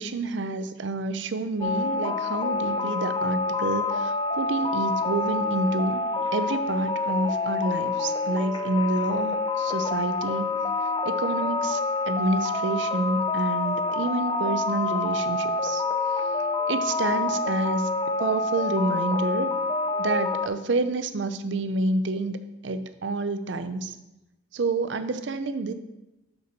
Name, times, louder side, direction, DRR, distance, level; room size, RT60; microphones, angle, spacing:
voice 1, 0.0-6.0 6.3-10.5 11.0-11.8 12.1-15.8 16.7-19.5 20.0-24.0 24.5-25.7, right 2 dB, 75° right, 11 dB, 0.5 m, -28 dB
sound 1, 1.6-20.5, left 3 dB, 25° left, 0.4 m, -27 dB
6.7 x 6.0 x 5.2 m, 0.96 s
head